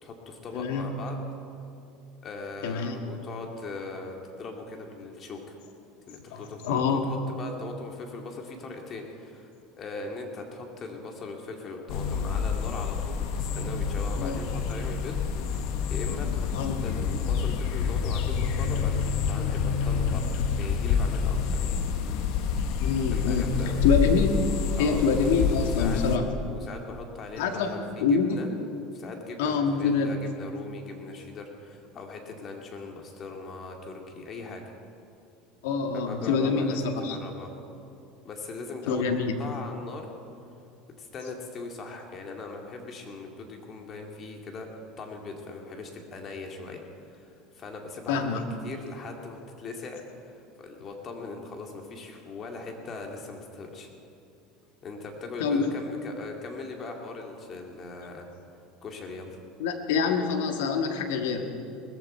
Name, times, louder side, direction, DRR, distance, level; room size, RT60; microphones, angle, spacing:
voice 1, 0.0-1.2 2.2-5.6 6.1-9.5 9.8-15.2 15.7-16.5 16.8-21.8 23.1-23.8 24.8-25.0 25.5-26.0 26.5-28.5 28.9-34.6 35.9-37.5 38.2-39.1 39.4-40.1 41.0-46.8 47.1-50.2 50.6-53.9 54.8-58.3 58.8-59.4, left 3 dB, 35° left, 2 dB, 2.4 m, -40 dB
voice 2, 0.5-0.9 2.6-3.0 6.3-7.1 14.2-14.6 16.5-16.8 22.8-23.5 23.8-24.4 24.8-26.3 27.4-27.7 28.0-28.4 29.4-30.2 35.6-37.2 38.9-39.4 48.1-48.5 55.4-55.7 59.6-61.5, left 5 dB, 85° left, 5 dB, 1.7 m, -26 dB
sound 1, 11.9-26.2, left 6 dB, 65° left, 1.1 m, -28 dB
19.5 x 15.0 x 4.5 m, 2.6 s
supercardioid pair, 120°, 0 cm